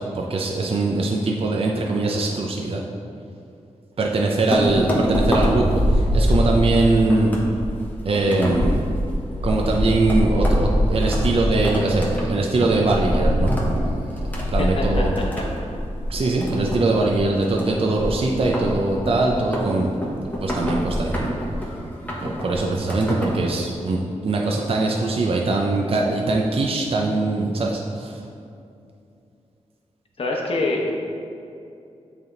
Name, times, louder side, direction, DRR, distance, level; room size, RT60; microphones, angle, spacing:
voice 1, 0.0-2.8 4.0-7.3 8.0-8.9 9.4-14.1 14.5-15.1 16.1-19.9 20.4-21.3 22.2-28.2, right 2 dB, 50° right, -1 dB, 0.5 m, -22 dB
sound 1, 4.5-23.5, equal, 15° left, 1.2 m, -24 dB
voice 2, 14.6-15.4 30.2-30.9, left 2 dB, 50° left, -1 dB, 0.9 m, -25 dB
8.3 x 3.5 x 3.9 m, 2.6 s
wide cardioid pair, 80°, 12 cm